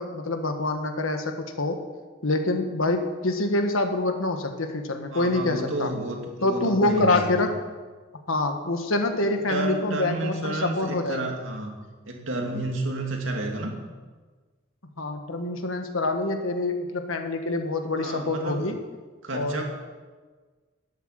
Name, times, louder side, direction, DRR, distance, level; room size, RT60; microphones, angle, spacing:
voice 1, 0.0-1.8 2.2-5.9 6.4-7.5 8.3-11.3 15.0-18.8 19.3-19.7, left 2 dB, 85° left, 5 dB, 1.6 m, -26 dB
voice 2, 5.1-7.2 9.2-11.7 12.1-13.7 18.0-18.7 19.2-19.7, right 2 dB, 70° right, 1 dB, 2.6 m, -30 dB
12.5 x 8.1 x 9.0 m, 1.4 s
head